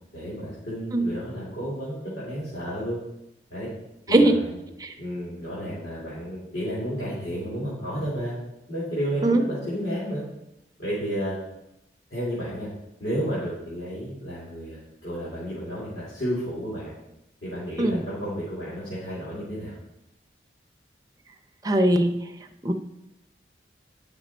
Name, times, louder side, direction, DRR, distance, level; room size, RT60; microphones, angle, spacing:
voice 1, 0.1-3.0 3.5-3.7 4.1-4.6 5.0-8.3 8.7-10.2 10.8-11.4 12.1-12.7 13.0-16.9 17.4-19.7, equal, 70° left, -9 dB, 2.9 m, -31 dB
voice 2, 21.6-22.1 22.6-22.7, right 1 dB, 20° right, 4 dB, 0.6 m, -20 dB
9.3 x 6.0 x 4.3 m, 0.88 s
head